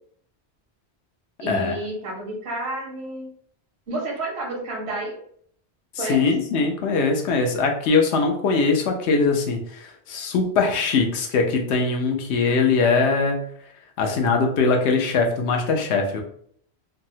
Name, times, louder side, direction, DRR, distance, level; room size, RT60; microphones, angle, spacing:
voice 1, 1.4-3.3 3.9-5.2 6.0-6.2, right 2 dB, 75° right, -2 dB, 1.3 m, -30 dB
voice 2, 5.9-13.4 14.0-16.2, left 4 dB, 90° left, 3 dB, 0.9 m, -21 dB
3.4 x 2.0 x 2.7 m, 0.63 s
omnidirectional pair, 1.1 m